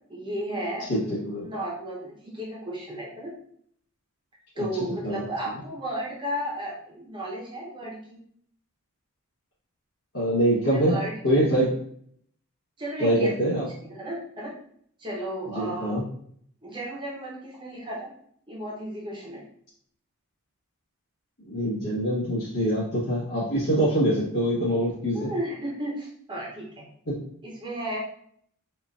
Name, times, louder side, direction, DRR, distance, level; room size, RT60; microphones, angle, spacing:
voice 1, 0.1-1.2 1.4-3.3 4.6-8.2 10.7-11.4 12.8-13.3 13.8-14.5 15.0-16.0 16.6-18.1 18.5-19.4 25.1-26.8 27.4-28.0, right 1 dB, 20° right, -4 dB, 0.7 m, -34 dB
voice 2, 0.9-1.5 4.5-4.6 5.0-5.2 10.1-10.9 11.2-11.7 13.0-13.7 15.5-16.0 21.5-25.3 27.1-27.2, right 1 dB, 75° left, -10 dB, 1.2 m, -24 dB
4.3 x 2.4 x 2.4 m, 0.64 s
head